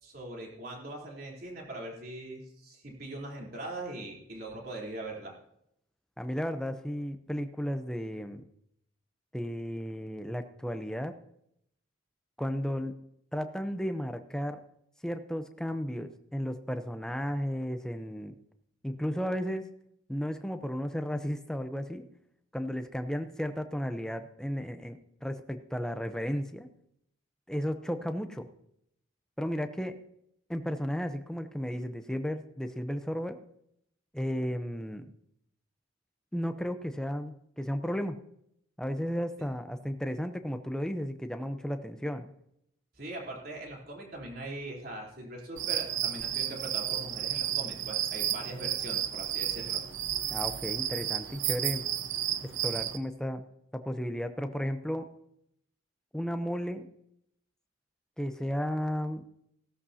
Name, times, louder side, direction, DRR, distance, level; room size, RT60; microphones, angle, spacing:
voice 1, 0.0-5.3 43.0-49.8, right 2 dB, 50° right, -2 dB, 3.6 m, -41 dB
voice 2, 6.2-8.4 9.3-11.1 12.4-12.9 13.3-14.6 15.0-18.4 18.8-19.7 20.1-22.0 22.5-26.7 27.5-28.5 29.4-30.0 30.5-33.4 34.1-35.1 36.3-38.2 38.8-42.3 50.3-51.8 52.6-53.4 53.7-55.1 56.1-56.9 58.2-59.3, equal, 5° left, 8 dB, 0.7 m, -34 dB
sound 1, 45.6-53.0, right 11 dB, 70° right, 0.7 m, -32 dB
16.5 x 13.0 x 2.8 m, 0.76 s
head